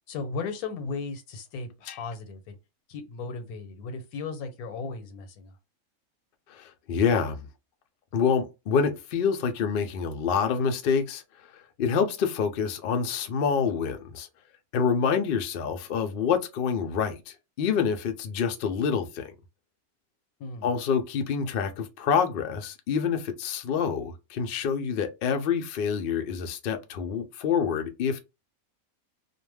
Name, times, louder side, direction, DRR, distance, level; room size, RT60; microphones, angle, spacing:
voice 1, 0.1-2.5 2.9-5.5 20.4-20.7, left 4 dB, 90° left, 1.2 m, -36 dB
voice 2, 6.5-7.5 8.1-11.2 11.8-14.3 14.7-19.3 20.6-28.2, left 6 dB, 75° left, 0.5 m, -27 dB
2.5 x 2.1 x 3.2 m
omnidirectional pair, 1.5 m